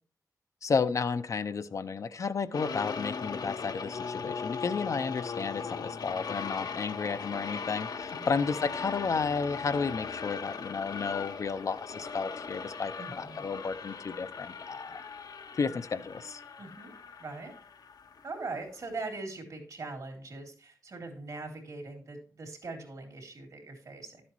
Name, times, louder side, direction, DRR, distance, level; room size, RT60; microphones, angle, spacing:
voice 1, 0.6-15.0 15.6-16.4, left 5 dB, 55° left, 11 dB, 0.6 m, -32 dB
sound 1, 2.5-18.8, left 5 dB, 75° left, 0.9 m, -39 dB
voice 2, 13.0-13.5 16.6-17.5 18.2-24.2, right 3 dB, 60° right, 3 dB, 3.3 m, -41 dB
12.0 x 8.2 x 3.0 m, 0.40 s
wide cardioid pair, 135°, 7 cm